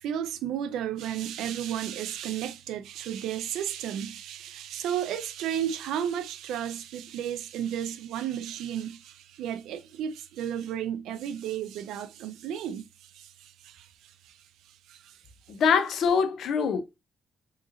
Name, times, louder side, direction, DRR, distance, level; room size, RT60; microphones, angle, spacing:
voice 1, 0.0-14.4 14.9-15.2, right 10 dB, 85° right, 0.4 m, -33 dB
voice 2, 15.5-16.8, left 6 dB, 65° left, 0.5 m, -24 dB
3.7 x 2.9 x 2.5 m
cardioid pair, 90°, 0 cm